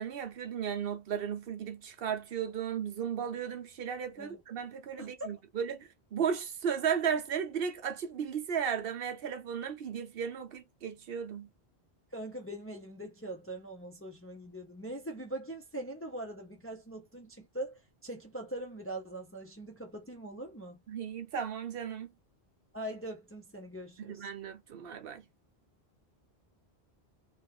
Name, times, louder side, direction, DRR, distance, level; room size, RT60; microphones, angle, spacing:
voice 1, 0.0-11.5 20.9-22.1 24.0-25.2, right 7 dB, 65° right, 0.8 m, -35 dB
voice 2, 5.0-5.4 12.1-20.8 22.7-24.3, right 1 dB, 15° left, 0.5 m, -42 dB
3.0 x 2.3 x 2.9 m
omnidirectional pair, 1.1 m